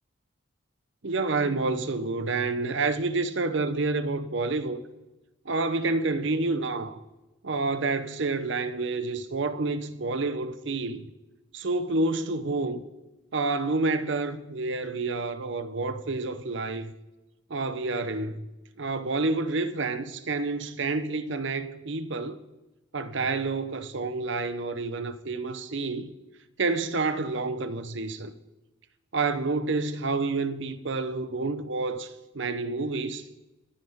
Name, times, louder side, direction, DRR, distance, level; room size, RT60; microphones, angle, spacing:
voice 1, 1.0-4.8 5.4-7.0 7.4-11.1 11.5-12.8 13.3-16.9 17.5-18.4 18.8-22.4 22.9-26.1 26.6-28.3 29.1-33.3, right 3 dB, 60° right, 0.8 m, -29 dB
25.0 x 9.3 x 3.6 m
head